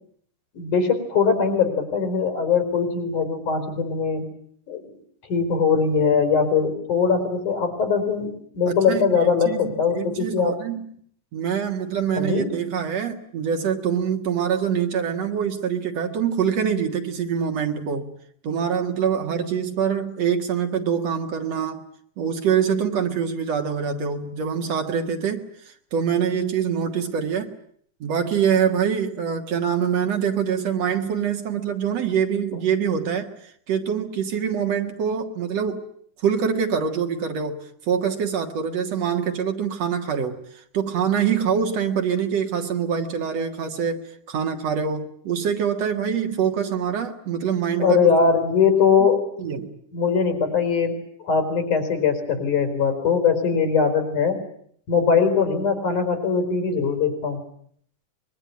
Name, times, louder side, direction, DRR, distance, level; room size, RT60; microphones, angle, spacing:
voice 1, 0.5-4.3 4.7-5.0 5.3-10.6 12.2-12.5 47.8-49.3 49.9-54.4 54.9-57.4, left 6 dB, 80° left, 5.6 m, -21 dB
voice 2, 8.7-10.9 11.3-18.1 18.4-21.8 22.2-27.5 28.0-33.3 33.7-35.9 36.2-37.6 37.9-40.4 40.7-48.1 49.4-49.7, right 7 dB, 60° right, 2.7 m, -24 dB
24.5 x 22.0 x 9.5 m
omnidirectional pair, 3.5 m